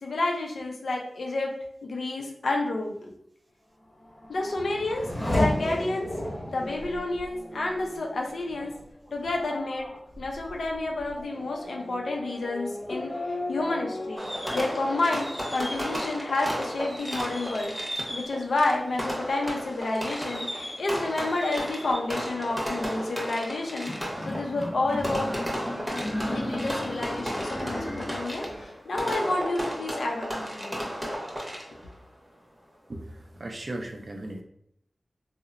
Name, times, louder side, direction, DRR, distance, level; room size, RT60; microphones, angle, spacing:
voice 1, 0.0-1.5 1.8-3.0 4.3-6.1 6.5-8.7 9.1-9.9 10.2-13.1 13.5-14.2 14.5-17.7 18.1-25.3 26.3-30.9, left 2 dB, 85° left, 0 dB, 0.5 m, -30 dB
Race car auto racing / Accelerating revving vroom, 3.8-17.0 17.4-18.1, left 1 dB, 45° left, 1.0 m, -35 dB
Fireworks, 14.2-31.9, equal, 10° right, 0.7 m, -34 dB
sound 1, 23.9-28.7, left 1 dB, 20° left, 0.4 m, -35 dB
voice 2, 32.9-34.4, right 1 dB, 50° right, 4 dB, 0.4 m, -37 dB
2.8 x 2.0 x 2.4 m, 0.71 s
cardioid pair, 55°, 0 cm